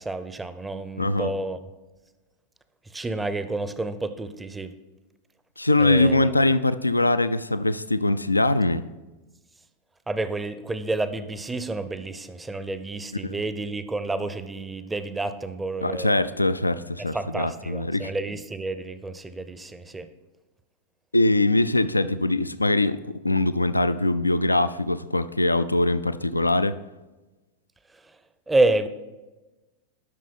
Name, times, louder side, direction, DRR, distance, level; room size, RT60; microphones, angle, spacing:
voice 1, 0.0-1.6 2.9-4.7 5.8-6.4 10.1-16.3 17.1-20.1 28.5-28.9, right 2 dB, 10° right, 11 dB, 0.6 m, -29 dB
voice 2, 1.0-1.3 5.6-8.8 13.2-13.4 15.8-18.1 21.1-26.8, left 2 dB, 85° left, 13 dB, 0.3 m, -22 dB
12.0 x 6.1 x 4.2 m, 1.1 s
figure-of-eight pair, 90°, 0 cm